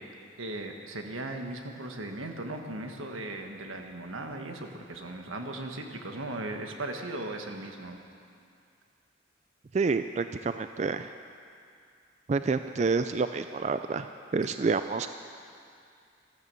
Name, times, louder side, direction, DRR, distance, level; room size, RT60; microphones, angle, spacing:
voice 1, 0.4-8.0, right 2 dB, 90° right, 4 dB, 1.5 m, -37 dB
voice 2, 9.7-11.1 12.3-14.1 14.3-15.2, right 4 dB, 35° right, 10 dB, 0.3 m, -28 dB
13.5 x 13.5 x 6.9 m, 2.4 s
head